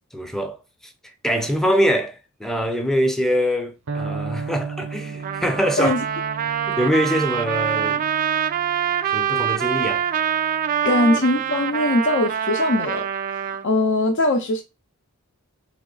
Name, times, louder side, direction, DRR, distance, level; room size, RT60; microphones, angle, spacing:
voice 1, 0.1-0.6 0.8-0.9 1.2-5.9 6.7-8.1 9.0-10.1, equal, ahead, 0.6 m, -23 dB
Electric guitar, 3.9-11.7, right 5 dB, 75° right, 0.7 m, -35 dB
Trumpet, 5.2-13.6, right 9 dB, 40° right, 0.3 m, -25 dB
voice 2, 10.8-13.1 13.6-14.6, left 2 dB, 55° left, 0.5 m, -20 dB
3.5 x 3.0 x 3.8 m
head